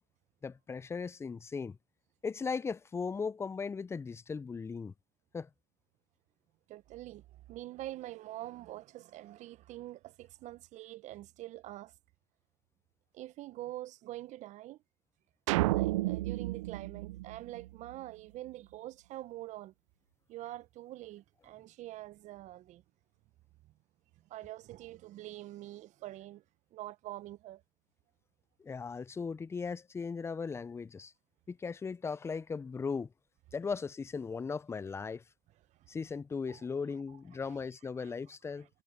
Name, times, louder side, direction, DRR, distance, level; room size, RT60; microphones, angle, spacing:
voice 1, 0.4-1.8 2.2-4.9 5.3-5.5 28.6-31.1 31.5-33.1 33.5-35.2 35.9-38.7, left 5 dB, 15° left, 0.6 m, -37 dB
voice 2, 6.7-11.9 13.1-14.8 15.7-19.7 20.3-22.8 24.3-26.4 26.7-27.6 35.7-35.9 36.5-36.6 37.4-37.6 38.0-38.1 38.6-38.7, right 15 dB, 45° right, 1.3 m, -45 dB
sound 1, 15.5-17.9, right 18 dB, 70° right, 0.7 m, -31 dB
hypercardioid pair, 90°, 16 cm